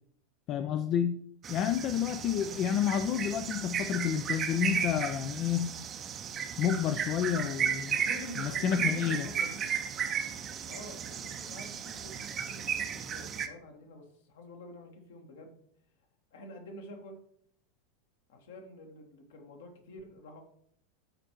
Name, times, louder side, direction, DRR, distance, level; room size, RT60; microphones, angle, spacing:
voice 1, 0.5-1.2 1.5-5.7 6.6-8.0 8.4-9.3, left 9 dB, 40° left, 9 dB, 0.4 m, -30 dB
sound 1, 1.4-13.5, right 7 dB, 30° right, 0.7 m, -35 dB
voice 2, 7.6-9.8 10.7-15.6 16.3-17.2 18.3-20.4, left 1 dB, 60° left, 4 dB, 1.3 m, -48 dB
12.5 x 4.3 x 3.0 m, 0.67 s
figure-of-eight pair, 85°, 0 cm